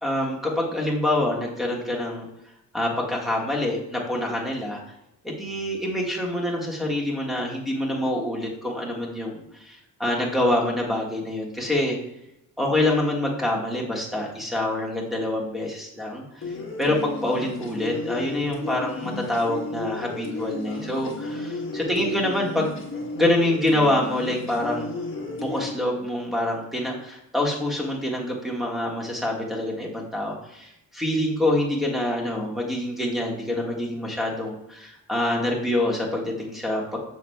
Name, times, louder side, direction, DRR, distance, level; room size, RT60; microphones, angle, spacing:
voice 1, 0.0-2.3 2.7-4.8 5.2-12.0 12.6-16.4 16.8-22.7 23.2-24.9 25.4-37.0, left 1 dB, ahead, -2 dB, 1.6 m, -26 dB
sound 1, 16.4-25.7, left 2 dB, 35° left, 1.3 m, -33 dB
7.2 x 6.0 x 2.3 m, 0.85 s
cardioid pair, 105°, 35 cm